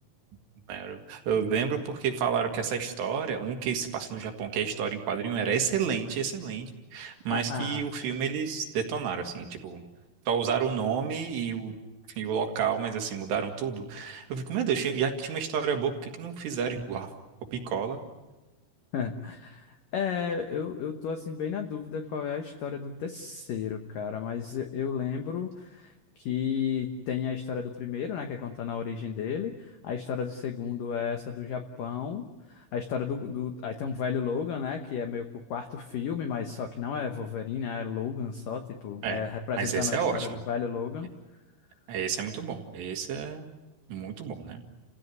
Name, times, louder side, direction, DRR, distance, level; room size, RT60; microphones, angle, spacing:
voice 1, 0.7-9.8 10.3-11.7 12.2-17.1 17.5-18.0 39.0-39.3 39.6-40.4 41.9-43.5 43.9-44.6, right 7 dB, 65° right, 4 dB, 3.7 m, -30 dB
voice 2, 7.3-7.8 18.9-32.2 32.5-41.1, left 7 dB, 80° left, 5 dB, 2.0 m, -33 dB
30.0 x 16.5 x 9.5 m, 1.1 s
omnidirectional pair, 5.6 m